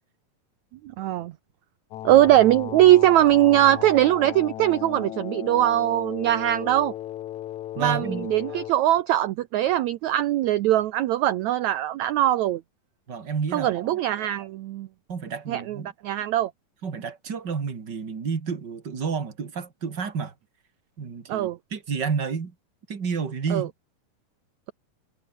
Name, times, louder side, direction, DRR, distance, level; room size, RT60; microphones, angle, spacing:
voice 1, 1.0-1.3 2.0-6.9 7.8-12.6 13.5-14.9 15.5-16.5 21.3-21.6 23.5-23.7, right 13 dB, 90° right, 1.6 m, -21 dB
sound 1, 1.9-8.7, left 13 dB, 65° left, 2.2 m, -36 dB
voice 2, 7.7-8.3 13.1-13.8 15.1-15.9 16.8-20.3 21.0-22.5 22.9-23.7, right 5 dB, 35° right, 2.5 m, -30 dB
omnidirectional pair, 4.3 m